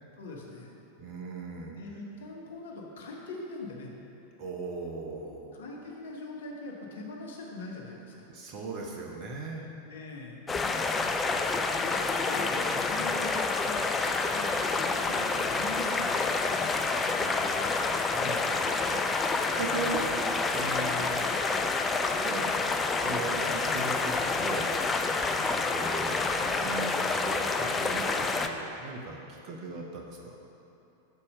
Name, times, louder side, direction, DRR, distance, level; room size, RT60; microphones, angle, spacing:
voice 1, 0.1-0.7 1.7-3.9 5.5-8.3 9.8-10.4 11.8-16.3 19.7-20.0 25.4-25.7, left 2 dB, 60° left, -1 dB, 0.9 m, -42 dB
voice 2, 1.0-1.7 4.4-5.6 8.3-9.7 10.5-11.3 11.7-12.0 14.9-15.2 16.6-20.1 20.5-21.2 21.6-22.7 23.0-24.7 25.7-30.4, right 3 dB, 40° right, -1 dB, 0.7 m, -39 dB
sound 1, 10.5-28.5, left 3 dB, 15° left, 0.4 m, -28 dB
6.4 x 4.2 x 6.5 m, 2.8 s
figure-of-eight pair, 90°, 0 cm